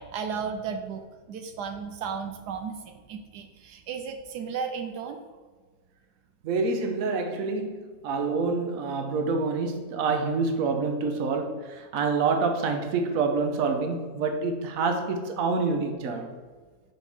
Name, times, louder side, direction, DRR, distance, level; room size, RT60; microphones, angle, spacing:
voice 1, 0.0-5.2, right 6 dB, 85° right, 1.3 m, -34 dB
voice 2, 6.4-16.4, right 4 dB, 60° right, 1.2 m, -27 dB
7.4 x 5.5 x 3.5 m
omnidirectional pair, 1.7 m